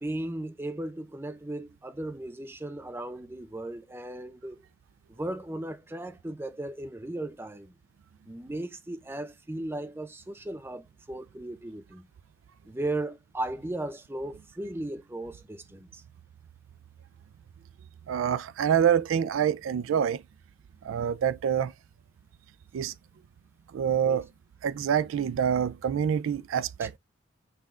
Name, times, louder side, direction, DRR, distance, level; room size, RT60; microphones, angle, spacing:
voice 1, 0.0-4.7 5.1-7.7 8.3-12.1 12.7-16.0 24.0-24.2 26.8-26.9, right 1 dB, 10° right, 0.4 m, -36 dB
voice 2, 18.1-20.2 20.8-21.7 22.7-22.9 23.7-24.3 24.6-26.9, right 8 dB, 80° right, 0.3 m, -26 dB
5.7 x 3.6 x 2.3 m
head